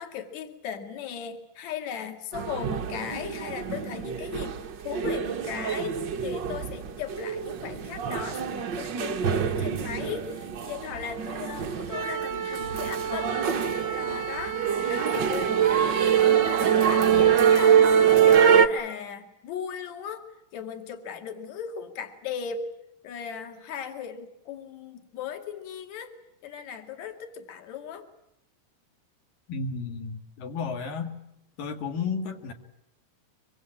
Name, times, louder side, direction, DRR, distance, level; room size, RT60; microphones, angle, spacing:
voice 1, 0.0-14.6 14.9-20.3 20.5-22.7 23.0-28.1, left 7 dB, 55° left, 5 dB, 3.4 m, -37 dB
sound 1, 2.3-18.7, right 8 dB, 65° right, 1.1 m, -24 dB
voice 2, 29.5-31.1 31.6-32.5, left 5 dB, 75° left, 4 dB, 3.8 m, -32 dB
25.0 x 24.5 x 8.8 m, 0.84 s
omnidirectional pair, 3.9 m